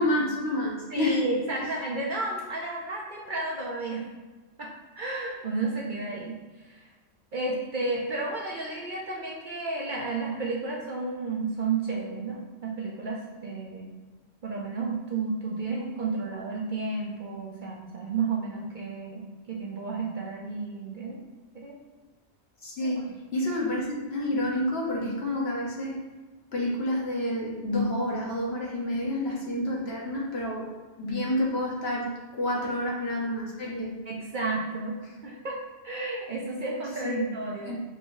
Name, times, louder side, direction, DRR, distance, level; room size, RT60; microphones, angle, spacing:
voice 1, 0.0-1.3 22.6-26.0 26.5-30.7 31.0-33.9 37.0-37.3 37.6-37.8, left 1 dB, 55° left, -3 dB, 1.2 m, -29 dB
voice 2, 0.9-4.0 4.6-4.7 5.0-6.4 6.7-6.9 7.3-13.9 14.4-19.2 19.5-21.2 21.6-21.9 23.0-23.1 29.5-29.8 34.1-35.6 35.8-37.8, right 3 dB, 55° right, -3 dB, 0.6 m, -32 dB
5.5 x 2.7 x 3.0 m, 1.3 s
omnidirectional pair, 1.3 m